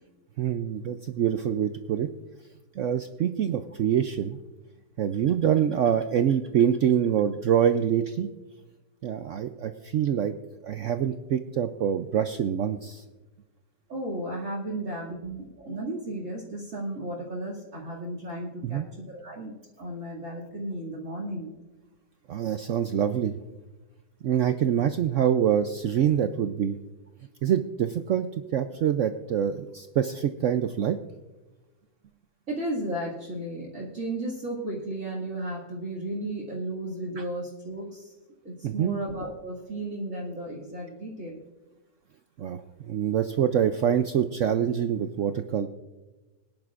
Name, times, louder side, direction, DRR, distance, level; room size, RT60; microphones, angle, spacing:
voice 1, 0.4-2.1 2.8-4.4 5.0-8.3 9.0-10.3 10.6-13.0 18.6-18.8 22.3-23.3 24.2-26.8 27.4-28.3 28.5-31.0 37.2-37.3 38.6-39.0 42.4-45.7, right 9 dB, 75° right, 9 dB, 0.7 m, -25 dB
voice 2, 13.9-21.5 32.5-38.1 38.4-41.4, right 1 dB, 45° right, -3 dB, 2.7 m, -34 dB
21.0 x 11.0 x 2.5 m, 1.2 s
omnidirectional pair, 1.9 m